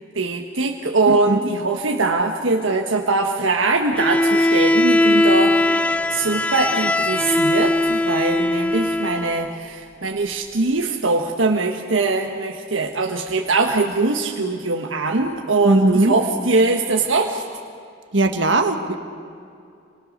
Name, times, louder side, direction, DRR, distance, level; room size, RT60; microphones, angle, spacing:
voice 1, 0.1-5.6 6.1-17.4, right 3 dB, 90° right, 2 dB, 1.4 m, -22 dB
voice 2, 1.1-1.4 15.6-16.1 18.1-19.0, right 2 dB, 70° right, 6 dB, 1.6 m, -18 dB
Bowed string instrument, 3.9-9.5, left 1 dB, 5° left, 0.5 m, -19 dB
28.5 x 24.0 x 6.5 m, 2.4 s
head